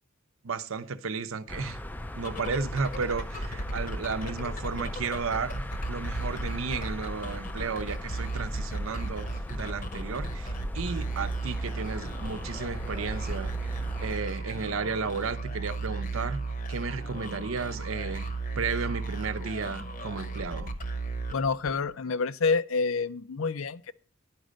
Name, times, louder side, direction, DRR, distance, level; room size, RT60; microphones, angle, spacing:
voice 1, 0.4-1.8 2.2-13.7 14.0-16.4 16.7-20.7, right 5 dB, 80° right, 0.7 m, -33 dB
sound 1, 1.5-14.2, left 1 dB, 10° left, 0.3 m, -38 dB
sound 2, 2.2-21.9, right 2 dB, 40° left, 0.8 m, -35 dB
voice 2, 21.3-23.9, left 4 dB, 75° left, 0.5 m, -28 dB
10.5 x 5.1 x 6.4 m
head